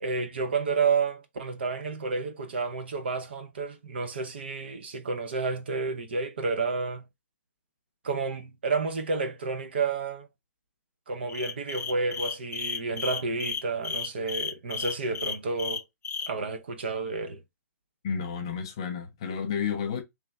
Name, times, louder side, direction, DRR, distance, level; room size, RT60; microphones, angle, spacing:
voice 1, 0.0-7.1 8.0-10.3 11.1-15.8 16.3-17.4, right 4 dB, 35° right, 0.5 m, -30 dB
sound 1, 11.3-16.3, left 6 dB, 85° left, 0.5 m, -33 dB
voice 2, 18.0-20.0, left 6 dB, 15° left, 0.4 m, -31 dB
3.3 x 3.0 x 3.4 m
hypercardioid pair, 175°, 9 cm